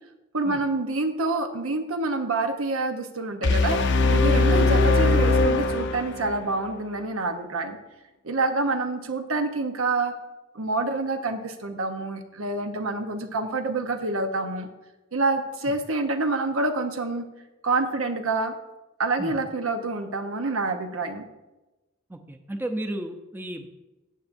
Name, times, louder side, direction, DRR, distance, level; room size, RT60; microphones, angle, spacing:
voice 1, 0.3-3.8 4.1-7.8 8.2-10.1 10.5-14.7 15.1-17.3 17.6-18.5 19.0-21.3, right 3 dB, 85° right, 6 dB, 1.0 m, -27 dB
sound 1, 3.4-6.4, left 3 dB, 60° left, 0.7 m, -20 dB
voice 2, 22.1-23.7, right 1 dB, 10° right, 6 dB, 0.6 m, -33 dB
14.0 x 8.5 x 2.6 m, 1.0 s
head